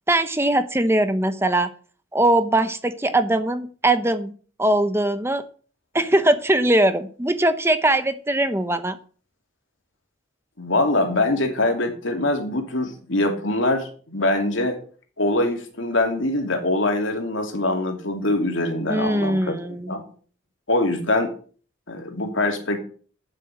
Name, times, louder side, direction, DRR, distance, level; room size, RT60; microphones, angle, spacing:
voice 1, 0.1-1.7 2.1-4.3 4.6-5.4 5.9-9.0 18.9-19.9, right 1 dB, 10° right, 11 dB, 0.8 m, -21 dB
voice 2, 10.6-14.8 15.2-20.0 20.7-21.3 21.9-22.8, left 2 dB, 80° left, 4 dB, 2.7 m, -23 dB
9.1 x 7.6 x 7.6 m, 0.42 s
head